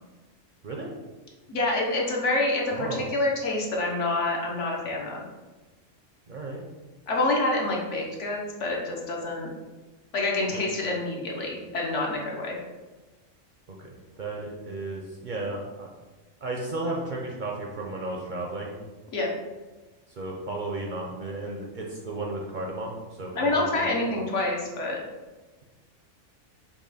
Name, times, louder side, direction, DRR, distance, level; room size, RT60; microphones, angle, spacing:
voice 1, 1.5-5.2 7.1-9.5 10.1-12.6 19.1-19.3 23.3-25.0, left 2 dB, 65° left, -1 dB, 1.2 m, -27 dB
voice 2, 2.7-3.1 6.3-6.6 10.5-10.6 13.7-15.9 16.4-18.7 20.2-24.0, right 2 dB, 50° right, -1 dB, 0.6 m, -34 dB
5.7 x 2.3 x 4.0 m, 1.2 s
omnidirectional pair, 1.4 m